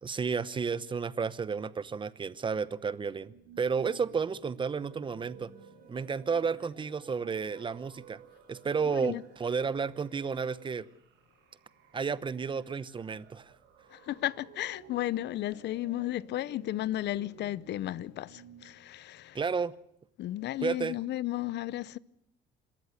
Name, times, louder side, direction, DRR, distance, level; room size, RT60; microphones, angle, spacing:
voice 1, 0.0-5.5 5.9-8.2 8.5-10.9 11.9-13.5 19.3-19.7 20.6-21.0, right 5 dB, 25° right, 0.9 m, -32 dB
sound 1, 3.2-18.6, right 7 dB, 85° right, 4.9 m, -56 dB
sound 2, 4.8-10.8, right 9 dB, 45° right, 5.0 m, -56 dB
voice 2, 8.8-9.2 13.9-19.4 20.2-22.0, left 14 dB, 65° left, 0.7 m, -34 dB
25.5 x 13.5 x 8.2 m
cardioid pair, 125°, 19 cm